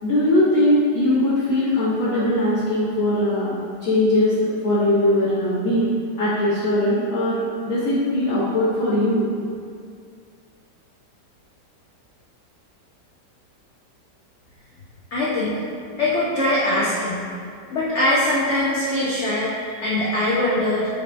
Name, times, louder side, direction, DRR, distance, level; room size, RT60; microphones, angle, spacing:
voice 1, 0.0-3.5 3.8-4.4 4.6-5.9 6.2-9.3, left 1 dB, 60° left, -13 dB, 1.1 m, -20 dB
voice 2, 15.1-15.6 16.0-17.2 17.7-20.9, left 1 dB, 90° left, -6 dB, 0.6 m, -22 dB
4.4 x 3.3 x 2.5 m, 2.3 s
omnidirectional pair, 1.9 m